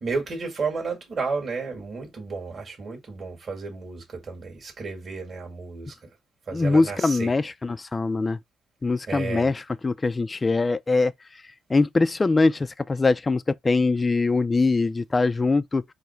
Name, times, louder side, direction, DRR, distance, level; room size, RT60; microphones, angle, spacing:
voice 1, 0.0-5.9 6.5-7.3 9.1-9.5, right 4 dB, 40° right, 2.0 m, -32 dB
voice 2, 6.5-8.4 8.8-11.1 11.7-15.8, left 3 dB, 25° left, 0.3 m, -22 dB
4.7 x 2.1 x 4.4 m
cardioid pair, 90°, 0 cm